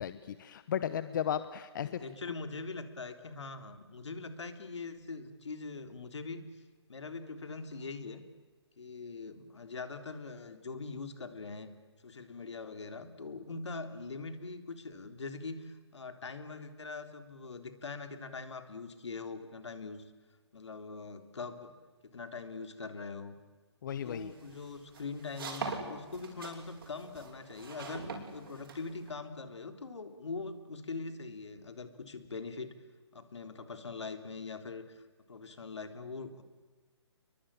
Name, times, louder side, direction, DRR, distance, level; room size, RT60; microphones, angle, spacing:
voice 1, 0.0-2.0 23.8-24.3, left 9 dB, 45° left, 13 dB, 1.0 m, -35 dB
voice 2, 1.8-6.6 6.9-8.2 8.8-11.7 12.0-20.0 20.5-21.7 22.1-23.4 24.0-28.1 28.3-32.7 33.1-36.4, left 4 dB, 75° left, 8 dB, 3.5 m, -42 dB
sound 1, 24.0-29.1, right 5 dB, 50° right, 7.0 m, -43 dB
29.5 x 23.0 x 8.7 m, 1.3 s
hypercardioid pair, 150°, 15 cm